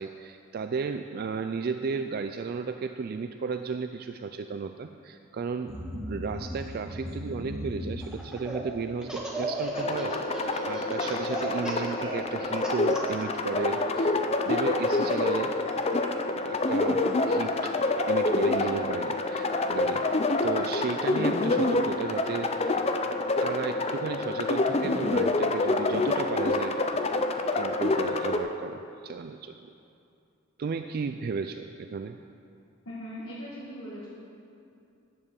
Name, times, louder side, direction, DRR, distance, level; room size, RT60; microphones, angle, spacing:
voice 1, 0.0-5.7 6.1-14.2 14.4-15.5 16.4-20.0 20.4-22.8 23.4-26.8 27.5-29.6 30.6-32.2, right 5 dB, 50° right, 7 dB, 0.3 m, -34 dB
sound 1, 5.7-21.8 22.1-22.2, equal, 70° right, 2.0 m, -42 dB
Laughter, 8.0-8.6 9.0-13.2, right 1 dB, 5° right, 1.4 m, -36 dB
sound 2, 9.7-28.4, left 2 dB, 30° left, 0.5 m, -27 dB
voice 2, 32.8-34.1, equal, 80° left, -7 dB, 1.6 m, -39 dB
9.5 x 8.3 x 7.0 m, 2.6 s
head